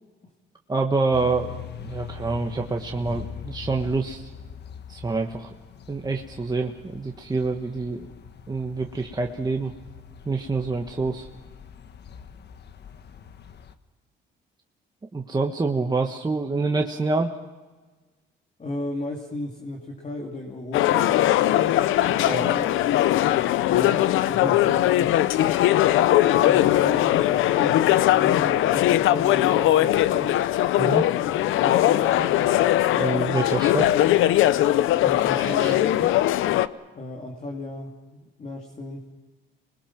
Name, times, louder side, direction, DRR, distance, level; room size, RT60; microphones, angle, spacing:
voice 1, 0.7-1.5 1.8-4.3 4.9-5.5 5.9-8.1 8.5-9.7 10.2-11.3 15.1-17.3 22.2-22.7 30.8-31.1 32.9-33.9 35.4-35.7, right 3 dB, 20° right, 2 dB, 1.4 m, -26 dB
sound 1, 1.1-13.7, left 7 dB, 60° left, 1.2 m, -42 dB
voice 2, 18.6-21.1 22.0-22.7 23.7-25.2 26.4-30.4 31.2-32.6 34.9-35.9 36.9-39.0, left 2 dB, 35° left, 1 dB, 2.8 m, -35 dB
sound 2, 20.7-36.7, left 13 dB, 85° left, 0.7 m, -20 dB
27.5 x 21.0 x 6.0 m, 1.3 s
cardioid pair, 90°, 20 cm